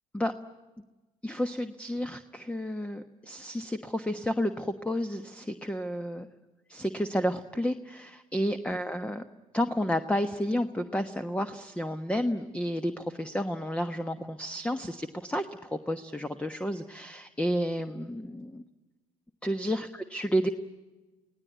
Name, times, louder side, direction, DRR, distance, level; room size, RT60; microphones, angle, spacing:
voice 1, 1.2-6.3 6.7-9.2 9.5-18.6 19.4-20.5, equal, 5° left, 10 dB, 1.2 m, -31 dB
25.0 x 17.5 x 9.4 m, 1.2 s
hypercardioid pair, 75°, 18 cm